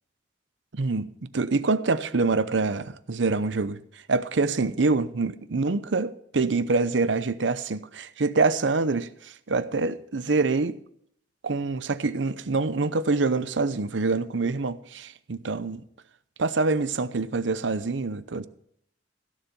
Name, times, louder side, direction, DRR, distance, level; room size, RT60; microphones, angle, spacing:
voice 1, 0.7-1.1 1.3-3.8 4.1-10.8 11.4-15.8 16.4-18.5, right 3 dB, 90° right, 0.7 m, -25 dB
16.0 x 7.2 x 5.4 m
head